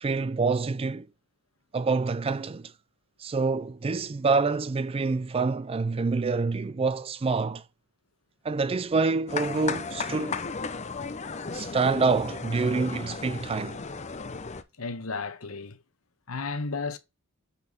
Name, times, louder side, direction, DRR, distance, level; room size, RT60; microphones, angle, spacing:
voice 1, 0.0-1.1 1.7-2.7 3.2-7.6 8.4-10.4 11.5-13.8, right 4 dB, 25° right, 0.4 m, -26 dB
sound 1, 9.3-14.6, left 4 dB, 35° left, 0.7 m, -35 dB
voice 2, 14.8-15.8 16.3-17.0, left 4 dB, 90° left, 1.2 m, -33 dB
8.3 x 4.2 x 4.2 m
head